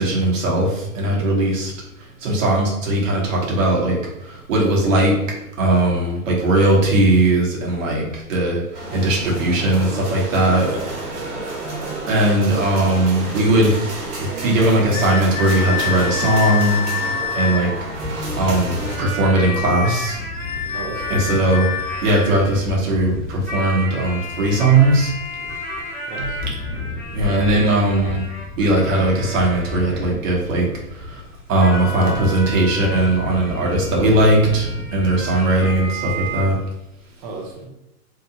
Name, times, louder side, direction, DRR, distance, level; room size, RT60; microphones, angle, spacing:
voice 1, 0.0-1.7 2.2-5.1 5.6-10.7 12.1-13.8 14.4-18.0 18.4-20.2 21.1-21.7 22.0-25.1 26.2-26.3 27.1-28.2 28.6-31.2 31.5-36.6, right 1 dB, 55° right, -3 dB, 1.4 m, -19 dB
sound 1, 8.7-19.0, right 2 dB, 80° right, 1.2 m, -30 dB
voice 2, 10.6-11.1 20.7-21.4 26.1-26.4 37.2-37.7, right 3 dB, 30° right, 0 dB, 0.7 m, -35 dB
sound 2, 14.9-17.7 19.8-22.4, left 8 dB, 60° left, 0.5 m, -27 dB
sound 3, 17.8-36.5, left 2 dB, 5° left, 1.4 m, -31 dB
3.1 x 2.8 x 2.9 m, 0.88 s
hypercardioid pair, 135°, 46 cm